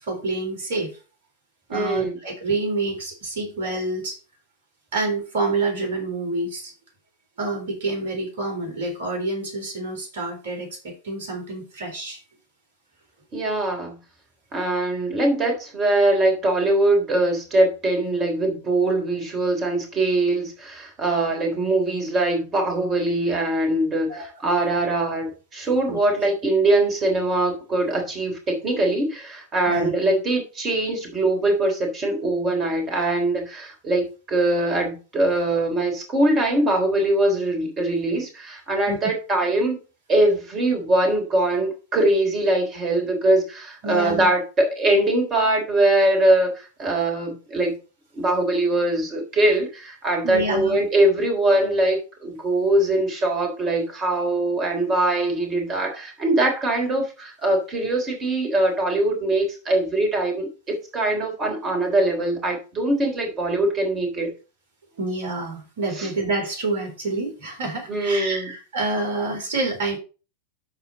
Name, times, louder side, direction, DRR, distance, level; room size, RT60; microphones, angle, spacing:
voice 1, 0.0-0.9 1.7-4.2 4.9-6.7 7.4-12.2 24.1-24.3 25.9-26.0 29.7-29.9 38.9-39.0 43.8-44.3 50.2-50.8 65.0-70.0, right 2 dB, 55° right, 2 dB, 3.9 m, -27 dB
voice 2, 1.7-2.2 13.3-14.0 14.5-39.8 40.1-47.8 48.1-64.3 66.0-66.1 67.9-68.5, right 1 dB, 25° right, 3 dB, 3.6 m, -22 dB
12.5 x 4.4 x 4.2 m, 0.33 s
figure-of-eight pair, 90°, 0 cm